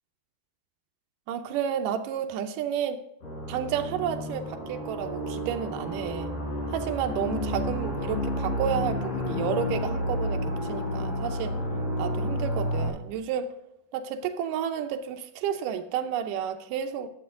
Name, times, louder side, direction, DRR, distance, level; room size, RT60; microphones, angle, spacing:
voice 1, 1.3-3.0 3.5-6.3 6.7-11.6 12.0-13.5 13.9-17.1, right 8 dB, 75° right, 2.2 m, -31 dB
sound 1, 3.2-12.9, left 1 dB, 45° left, 4.6 m, -31 dB
11.5 x 7.7 x 3.7 m
omnidirectional pair, 4.2 m